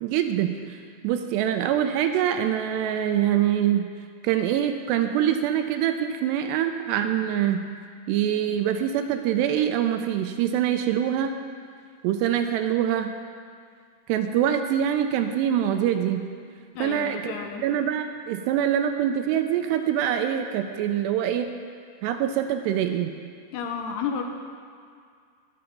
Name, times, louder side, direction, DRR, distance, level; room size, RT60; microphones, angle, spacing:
voice 1, 0.0-3.8 4.2-7.6 8.1-11.3 12.0-13.1 14.1-16.2 16.8-17.3 17.6-21.5 22.0-23.1, right 10 dB, 80° right, 7 dB, 2.6 m, -24 dB
voice 2, 16.8-17.7 23.5-24.3, left 6 dB, 80° left, 4 dB, 2.7 m, -31 dB
19.5 x 6.8 x 5.3 m, 2.2 s
omnidirectional pair, 5.1 m